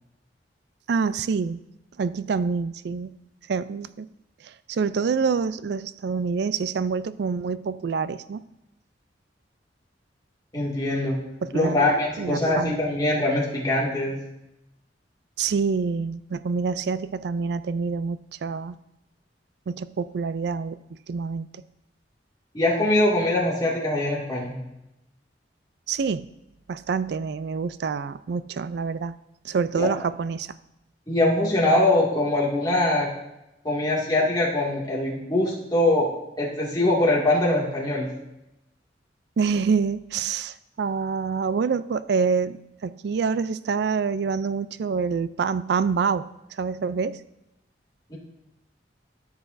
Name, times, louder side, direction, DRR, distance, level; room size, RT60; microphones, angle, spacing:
voice 1, 0.9-1.6 2.0-3.2 3.5-4.1 4.4-8.4 11.4-11.9 12.2-12.8 15.4-18.8 19.7-20.8 21.1-21.5 25.9-26.3 26.7-29.1 29.4-30.5 39.4-46.3 46.6-47.2, right 5 dB, 65° right, 16 dB, 0.3 m, -26 dB
voice 2, 10.5-11.2 11.5-14.2 22.5-24.6 29.7-29.9 31.1-33.1 33.6-36.1 36.4-38.1 48.1-48.2, left 1 dB, 20° left, -4 dB, 2.1 m, -22 dB
13.5 x 7.1 x 2.6 m, 0.90 s
head